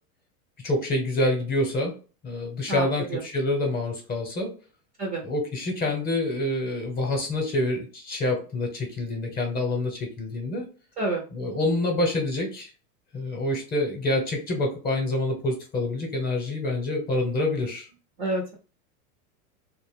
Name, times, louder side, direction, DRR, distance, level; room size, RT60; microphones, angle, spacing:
voice 1, 0.6-1.9 2.2-4.5 5.2-10.6 11.3-12.7 13.1-17.9, left 2 dB, 20° left, 2 dB, 0.9 m, -27 dB
voice 2, 2.7-3.2 5.0-5.2 11.0-11.2 18.2-18.5, right 2 dB, 20° right, -1 dB, 0.5 m, -28 dB
2.5 x 2.2 x 3.4 m, 0.35 s
supercardioid pair, 135°, 43 cm